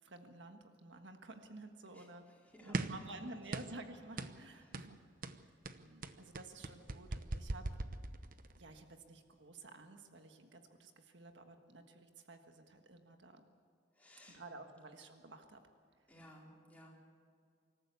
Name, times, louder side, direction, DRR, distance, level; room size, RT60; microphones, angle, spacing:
voice 1, 0.0-2.2 2.6-5.0 5.8-7.6 8.6-13.4 14.3-15.6 16.0-16.1, right 2 dB, 70° right, 6 dB, 1.5 m, -52 dB
voice 2, 1.9-3.1 4.5-4.8 13.9-14.4 16.1-17.0, equal, 10° left, -3 dB, 4.4 m, -59 dB
sound 1, 2.7-3.1 3.5-3.8 4.2-4.4 4.7-4.9 5.2-8.6, right 2 dB, 50° right, 0.9 m, -40 dB
25.5 x 14.5 x 8.3 m, 2.2 s
head